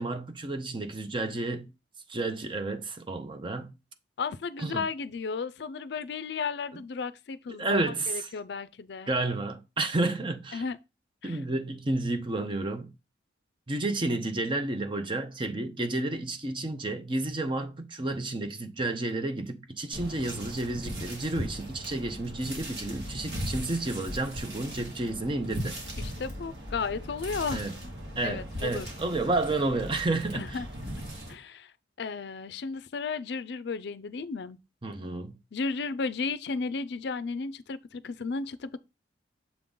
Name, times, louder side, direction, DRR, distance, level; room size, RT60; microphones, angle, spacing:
voice 1, 0.0-1.7 2.1-3.7 4.6-4.8 7.6-8.3 9.1-10.6 11.2-12.9 13.7-25.8 27.5-27.7 28.2-30.6 34.8-35.4, right 2 dB, 25° right, 0.6 m, -31 dB
voice 2, 4.2-7.8 8.1-9.1 10.5-10.8 11.2-11.4 26.0-27.9 28.2-28.9 30.3-30.7 31.3-31.7 32.0-34.6 35.5-38.8, left 4 dB, 65° left, 0.4 m, -34 dB
sound 1, 19.9-31.3, equal, 65° right, 2.2 m, -38 dB
7.0 x 3.7 x 3.8 m
head